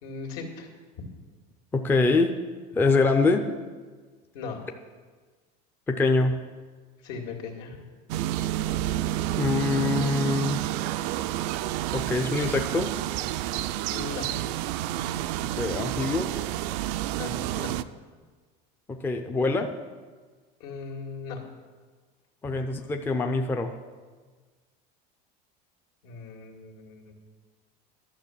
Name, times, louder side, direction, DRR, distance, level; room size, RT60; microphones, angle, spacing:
voice 1, 0.0-0.7 4.3-4.6 7.0-7.8 13.9-14.3 17.2-17.7 20.6-21.4 22.4-22.6 26.0-27.1, left 4 dB, 75° left, 0 dB, 2.3 m, -38 dB
voice 2, 1.7-2.4 2.7-3.5 5.9-6.4 9.4-10.7 11.9-12.9 15.6-16.3 18.9-19.7 22.4-23.8, left 3 dB, 10° left, 5 dB, 0.5 m, -24 dB
sound 1, 8.1-17.8, right 13 dB, 75° right, 0.5 m, -29 dB
12.0 x 6.6 x 7.3 m, 1.4 s
cardioid pair, 160°, 21 cm